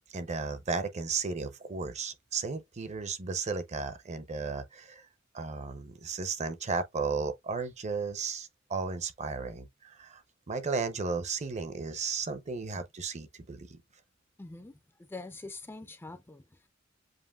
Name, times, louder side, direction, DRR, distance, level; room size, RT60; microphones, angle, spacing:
voice 1, 0.0-5.1 5.3-10.2 10.5-13.8, right 4 dB, 35° right, 0.6 m, -34 dB
voice 2, 14.4-16.7, left 2 dB, 10° left, 0.4 m, -45 dB
7.5 x 2.5 x 2.3 m
head